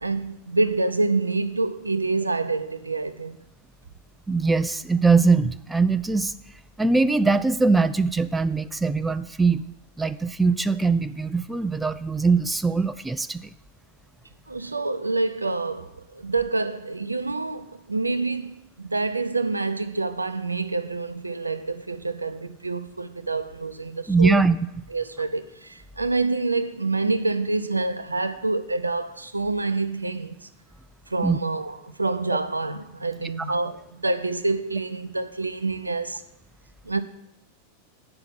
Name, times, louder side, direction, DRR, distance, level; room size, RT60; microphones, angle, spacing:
voice 1, 0.0-3.4 14.5-24.4 24.9-30.5 31.1-36.2 36.8-37.0, right 3 dB, 80° right, 0.5 m, -27 dB
voice 2, 4.3-6.3 6.8-13.5 24.1-24.6 31.2-31.4, right 4 dB, 10° right, 0.4 m, -22 dB
8.8 x 5.8 x 8.0 m
figure-of-eight pair, 90°, 0 cm